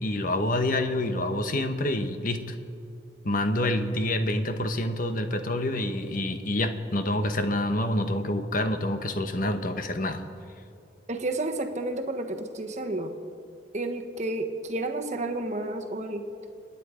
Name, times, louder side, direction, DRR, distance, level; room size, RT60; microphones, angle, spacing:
voice 1, 0.0-2.4 3.2-10.2, left 1 dB, 45° left, 8 dB, 1.1 m, -27 dB
voice 2, 11.1-13.1 13.7-16.3, right 2 dB, 40° right, 5 dB, 1.2 m, -31 dB
27.0 x 9.7 x 5.0 m, 2.4 s
head